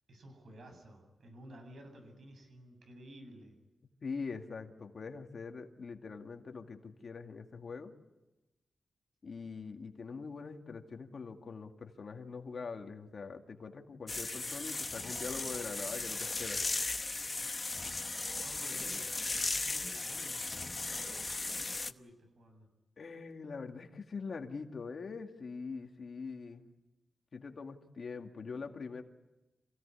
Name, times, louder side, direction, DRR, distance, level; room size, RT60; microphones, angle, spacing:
voice 1, 0.1-3.6 18.4-19.0 19.6-22.7, right 1 dB, 70° right, 5 dB, 7.8 m, -53 dB
voice 2, 4.0-7.9 9.2-16.6 23.0-26.7 27.3-29.0, left 4 dB, 55° left, 4 dB, 2.3 m, -43 dB
sound 1, 14.1-21.9, left 3 dB, 30° left, 0.9 m, -37 dB
27.5 x 17.0 x 9.9 m, 1.0 s
cardioid pair, 85°, 0 cm